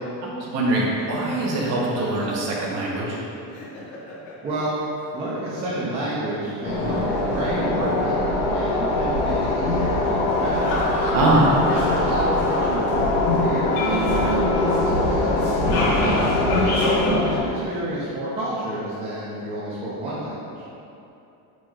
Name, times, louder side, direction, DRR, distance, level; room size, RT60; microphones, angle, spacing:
voice 1, 0.2-3.2 11.1-11.4, right 2 dB, 35° right, -4 dB, 1.0 m, -23 dB
Laughter, 0.8-4.9 6.5-8.7 10.4-13.5 13.7-13.9 15.4-17.5, left 1 dB, 85° left, 1.4 m, -34 dB
voice 2, 5.1-11.1 11.7-17.0 17.2-20.7, right 1 dB, 15° right, -10 dB, 0.5 m, -30 dB
sound 1, 6.6-17.4, left 2 dB, 65° left, 1.1 m, -22 dB
6.6 x 6.1 x 2.4 m, 2.8 s
cardioid pair, 180°, 46 cm